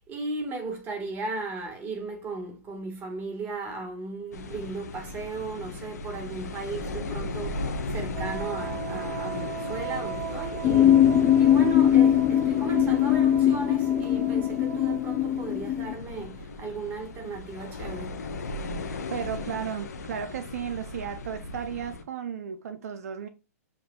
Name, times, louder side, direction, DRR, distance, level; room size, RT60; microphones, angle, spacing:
voice 1, 0.0-18.2, right 3 dB, 20° right, 1.6 m, -36 dB
sound 1, 4.3-22.0, left 2 dB, 90° left, 1.0 m, -37 dB
Wind instrument woodwind instrument, 8.1-15.5, right 8 dB, 55° right, 1.1 m, -38 dB
sound 2, 10.6-15.9, left 11 dB, 25° left, 0.4 m, -21 dB
voice 2, 19.1-23.3, right 8 dB, 70° right, 0.6 m, -34 dB
7.6 x 2.6 x 2.3 m
hypercardioid pair, 140°, 9 cm